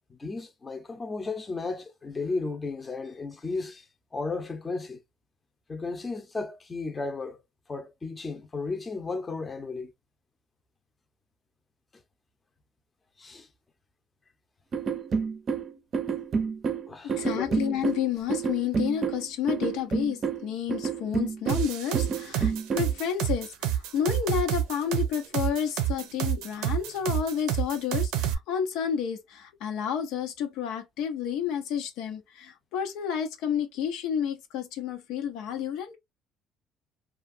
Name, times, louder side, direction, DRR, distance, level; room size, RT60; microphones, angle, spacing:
voice 1, 0.1-3.8 4.1-5.0 5.7-7.4 7.7-9.9 13.2-13.5 16.9-17.5, left 3 dB, 20° left, 0.6 m, -34 dB
sound 1, 14.7-23.0, right 6 dB, 40° right, 0.5 m, -29 dB
voice 2, 17.0-36.0, left 8 dB, 85° left, 0.7 m, -30 dB
sound 2, 21.5-28.3, right 11 dB, 90° right, 0.5 m, -28 dB
2.8 x 2.4 x 2.5 m
cardioid pair, 120°, 0 cm